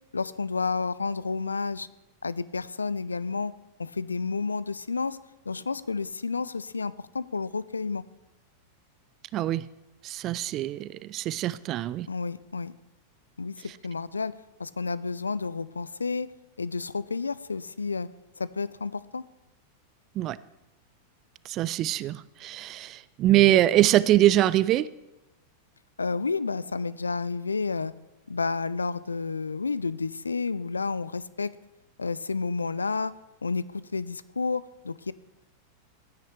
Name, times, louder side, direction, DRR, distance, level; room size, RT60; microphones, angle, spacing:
voice 1, 0.1-1.9 2.2-3.5 3.8-5.2 5.5-8.0 12.1-12.7 13.4-14.3 14.6-16.3 16.6-18.1 18.4-19.2 26.0-27.9 28.3-31.5 32.0-33.1 33.4-35.1, left 4 dB, 75° left, 18 dB, 0.4 m, -30 dB
voice 2, 9.3-9.6 10.0-12.1 20.2-20.4 21.5-24.9, right 14 dB, 35° right, 19 dB, 0.4 m, -23 dB
15.5 x 9.4 x 3.3 m, 1.0 s
figure-of-eight pair, 90°, 0 cm